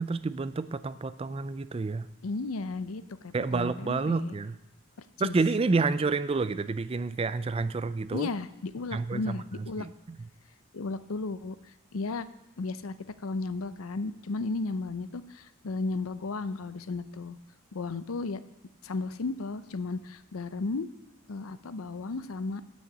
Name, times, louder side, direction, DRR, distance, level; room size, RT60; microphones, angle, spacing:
voice 1, 0.0-2.1 3.3-4.6 5.2-8.3 8.9-9.9, right 4 dB, 25° right, 14 dB, 0.3 m, -29 dB
voice 2, 2.2-4.4 5.2-5.3 8.1-9.9 10.7-11.6 11.9-12.3 12.6-12.9 13.2-17.4 17.7-18.4 18.8-20.9 21.3-22.6, left 3 dB, 90° left, 14 dB, 0.6 m, -34 dB
9.5 x 6.4 x 8.3 m, 0.89 s
head